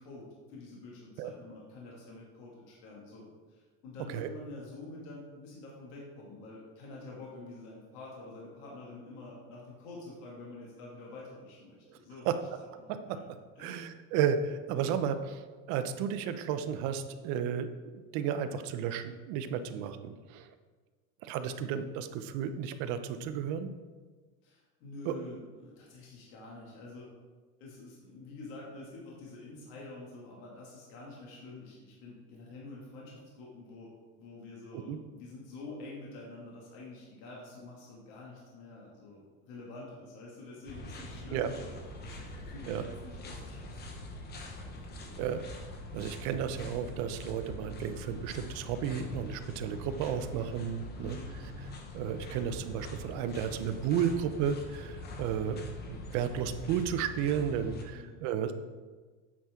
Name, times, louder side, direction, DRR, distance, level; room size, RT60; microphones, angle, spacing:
voice 1, 0.0-12.3 12.8-13.2 13.6-13.9 19.6-19.8 24.4-27.1 27.6-33.9 34.2-41.7 42.0-42.2 42.5-45.2 51.0-51.3 57.9-58.2, left 2 dB, 70° left, -4 dB, 2.2 m, -48 dB
voice 2, 13.6-15.4 15.7-20.5 21.2-23.7 25.1-25.2 34.7-35.0 41.3-41.5 42.7-42.9 45.2-45.5 45.9-51.2 51.9-58.5, right 8 dB, 55° right, 9 dB, 0.7 m, -33 dB
sound 1, 40.7-57.8, left 1 dB, 30° left, 1.0 m, -44 dB
8.6 x 5.8 x 3.7 m, 1.4 s
cardioid pair, 160°, 34 cm